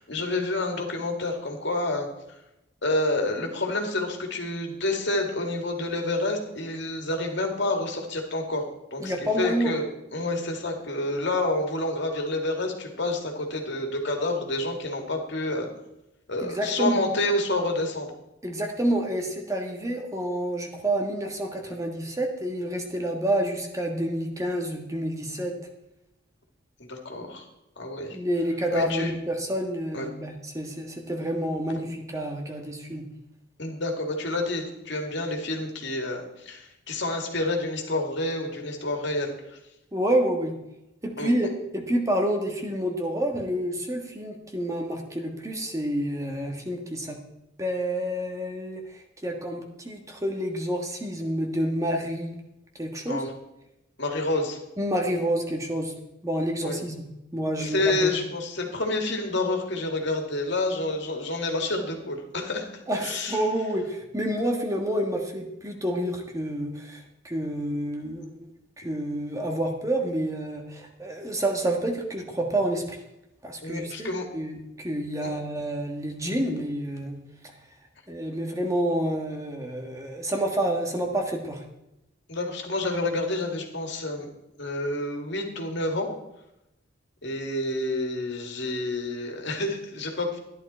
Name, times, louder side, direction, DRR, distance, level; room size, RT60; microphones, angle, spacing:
voice 1, 0.0-2.1 2.8-8.6 8.9-9.8 10.1-15.7 16.3-18.1 26.8-27.4 27.8-28.2 28.7-29.1 29.9-30.1 33.6-39.3 41.2-41.3 53.1-53.3 54.0-54.6 56.6-56.8 57.6-62.7 62.9-63.4 73.6-74.2 82.3-84.3 84.6-86.1 87.2-90.4, left 2 dB, 60° left, 3 dB, 2.2 m, -28 dB
voice 2, 9.0-9.7 16.4-17.0 18.4-25.5 28.1-33.0 39.9-40.5 41.0-47.2 47.6-52.3 52.8-53.2 54.8-55.9 56.2-57.0 57.3-58.2 62.9-68.5 68.8-73.0 73.4-77.2 78.1-81.6, right 1 dB, 15° right, 2 dB, 1.4 m, -28 dB
13.5 x 11.5 x 4.4 m, 0.88 s
head